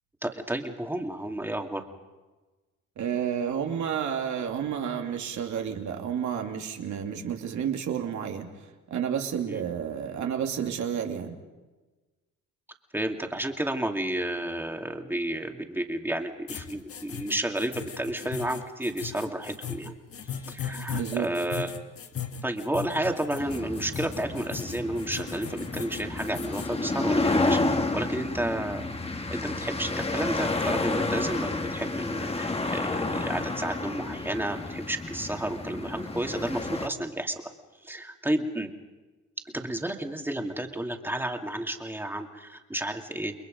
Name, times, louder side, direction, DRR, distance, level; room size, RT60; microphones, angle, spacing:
voice 1, 0.2-1.9 9.5-9.6 12.9-19.9 20.2-21.7 22.4-27.6 27.9-28.8 29.3-37.5 37.8-38.7 39.5-43.3, right 1 dB, 5° right, 4 dB, 2.4 m, -31 dB
voice 2, 3.0-11.4 20.9-21.3, right 8 dB, 70° right, 3 dB, 2.8 m, -31 dB
sound 1, 16.5-26.7, left 8 dB, 50° left, 1.5 m, -38 dB
sound 2, 23.4-36.9, left 2 dB, 20° left, 1.7 m, -30 dB
29.5 x 22.0 x 5.3 m, 1.2 s
cardioid pair, 90°, 30 cm